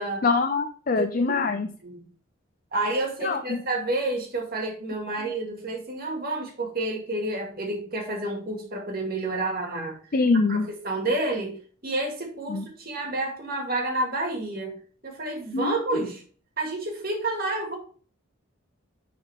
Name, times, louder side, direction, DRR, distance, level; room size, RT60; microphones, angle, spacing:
voice 1, 0.2-1.7 3.2-3.6 10.1-10.7 12.5-12.6 15.5-16.0, left 4 dB, 40° left, 7 dB, 0.5 m, -24 dB
voice 2, 1.0-1.4 1.8-2.0 2.7-14.8 15.0-16.2 16.6-17.8, right 2 dB, 45° right, 1 dB, 2.1 m, -30 dB
9.8 x 4.2 x 3.5 m, 0.43 s
head